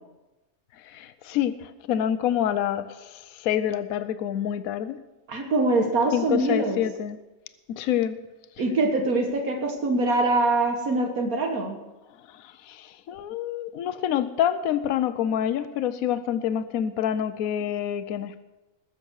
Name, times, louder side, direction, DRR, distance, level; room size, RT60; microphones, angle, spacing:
voice 1, 0.8-5.0 6.1-7.2 7.7-8.2 12.3-18.4, left 10 dB, 80° left, 12 dB, 1.1 m, -27 dB
voice 2, 5.3-6.8 8.6-11.8, right 2 dB, 80° right, 3 dB, 1.9 m, -24 dB
20.5 x 7.4 x 6.3 m, 1.1 s
omnidirectional pair, 1.5 m